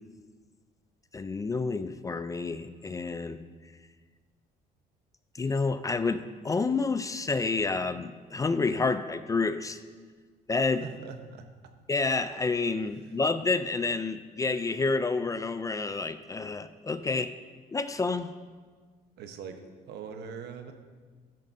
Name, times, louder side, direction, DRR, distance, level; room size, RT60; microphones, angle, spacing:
voice 1, 1.1-3.4 5.3-9.8 10.5-10.8 11.9-17.3 17.7-18.3, left 4 dB, 20° left, 12 dB, 0.4 m, -29 dB
voice 2, 10.8-11.5 13.0-13.1 19.2-20.7, right 6 dB, 75° right, 6 dB, 1.1 m, -42 dB
14.5 x 9.0 x 2.7 m, 1.5 s
cardioid pair, 110°, 17 cm